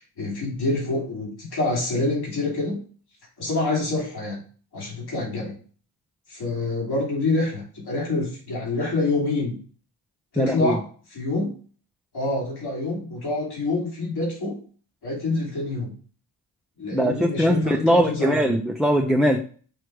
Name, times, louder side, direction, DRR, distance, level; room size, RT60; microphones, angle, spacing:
voice 1, 0.0-2.8 3.4-4.4 4.7-5.6 6.3-9.6 10.3-11.5 12.1-14.6 15.0-15.9 16.8-18.6, left 2 dB, 70° left, -4 dB, 3.4 m, -27 dB
voice 2, 10.4-10.8 16.9-19.4, equal, ahead, 1 dB, 0.8 m, -21 dB
6.3 x 3.2 x 4.8 m, 0.41 s
cardioid pair, 60°, 40 cm